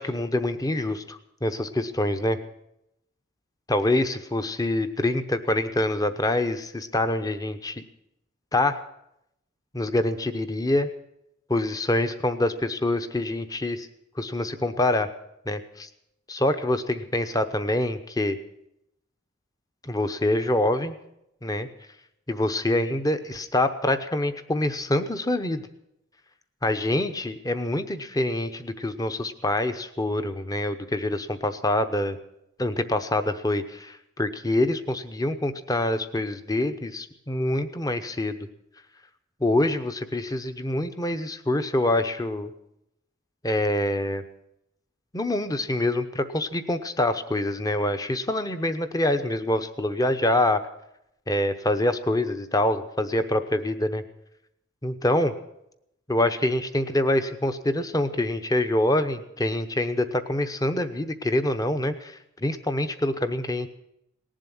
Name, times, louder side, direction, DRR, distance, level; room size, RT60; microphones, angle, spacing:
voice 1, 0.0-2.4 3.7-7.8 8.5-8.8 9.7-10.9 11.5-13.9 14.2-15.1 15.5-15.9 16.3-18.4 19.8-20.9 21.4-21.7 22.3-25.7 26.6-32.2 32.6-38.5 39.4-42.5 43.4-44.2 45.1-50.6 51.3-54.0 54.8-55.3 56.1-63.7, left 1 dB, 15° left, 9 dB, 0.8 m, -25 dB
18.5 x 7.5 x 9.9 m, 0.83 s
head